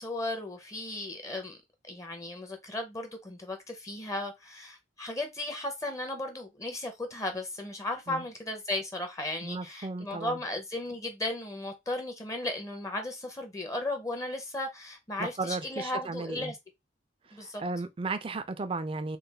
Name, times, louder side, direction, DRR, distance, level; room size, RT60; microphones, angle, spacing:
voice 1, 0.0-1.6 1.9-16.6 17.3-17.6, left 2 dB, 15° left, 0.6 m, -35 dB
voice 2, 9.4-10.4 15.2-16.5 17.3-19.2, right 3 dB, 30° right, 0.4 m, -35 dB
3.2 x 2.2 x 3.3 m
head